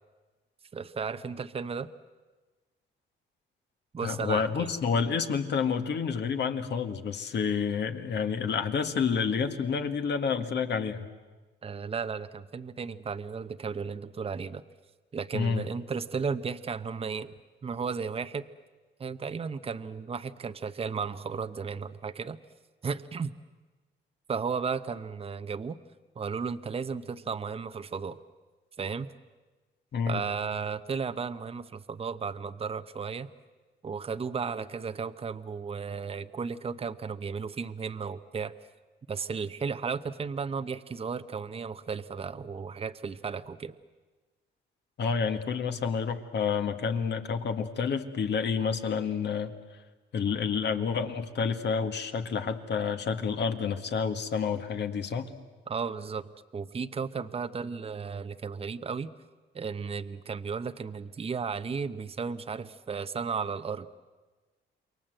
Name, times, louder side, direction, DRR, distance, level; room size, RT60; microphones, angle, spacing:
voice 1, 0.7-1.9 3.9-4.7 11.6-14.6 15.1-17.3 17.6-18.4 19.0-22.4 22.8-23.3 24.3-25.8 26.2-28.2 28.8-29.1 30.1-33.3 33.8-38.5 39.1-43.7 55.7-59.1 59.5-63.9, right 5 dB, 30° right, 10 dB, 0.8 m, -34 dB
voice 2, 4.0-11.1 15.3-15.7 29.9-30.2 45.0-49.5 50.1-55.3, left 6 dB, 60° left, 7 dB, 1.9 m, -29 dB
28.0 x 22.5 x 7.8 m, 1.3 s
cardioid pair, 90°, 20 cm